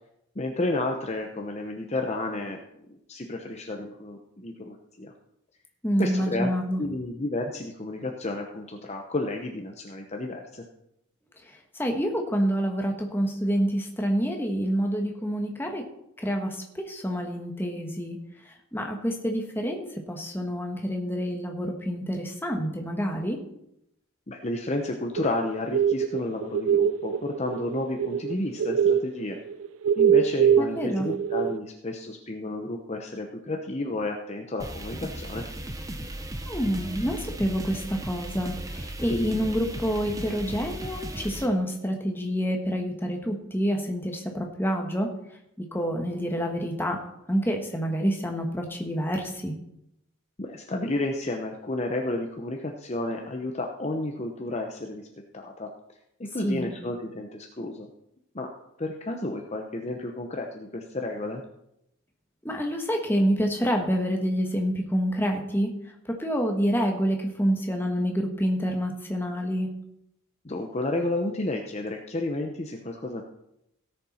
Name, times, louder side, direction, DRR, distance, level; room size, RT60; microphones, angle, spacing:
voice 1, 0.4-2.6 2.9-5.1 6.0-6.5 6.8-10.6 24.3-29.4 30.0-35.5 50.4-55.1 55.3-55.7 56.2-57.9 58.3-58.5 58.8-61.4 70.4-73.2, left 2 dB, 30° left, 3 dB, 0.7 m, -31 dB
voice 2, 5.8-6.8 11.7-15.9 16.2-18.2 18.5-23.4 30.6-31.1 36.5-45.1 45.6-47.0 47.3-49.5 56.4-56.7 62.4-65.7 66.0-69.7, equal, 10° left, 3 dB, 1.3 m, -27 dB
sound 1, 25.2-28.3 28.6-31.6, right 8 dB, 70° right, 0.4 m, -23 dB
sound 2, 34.6-41.5, right 1 dB, 15° right, 0.7 m, -36 dB
17.0 x 6.8 x 4.3 m, 0.81 s
head